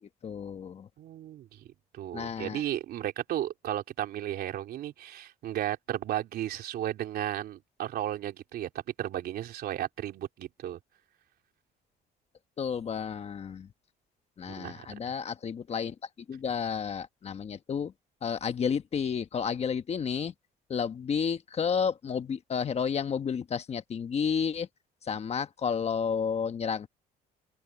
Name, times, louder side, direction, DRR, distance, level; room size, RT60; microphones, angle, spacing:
voice 1, 0.0-0.9 2.1-2.6 12.6-13.7 14.4-17.9 18.2-20.3 20.7-24.7 25.0-26.9, left 6 dB, 40° left, 1.3 m, -31 dB
voice 2, 1.0-8.7 9.0-10.8 14.5-14.8, right 12 dB, 65° right, 3.5 m, -34 dB
open air
cardioid pair, 110°, 17 cm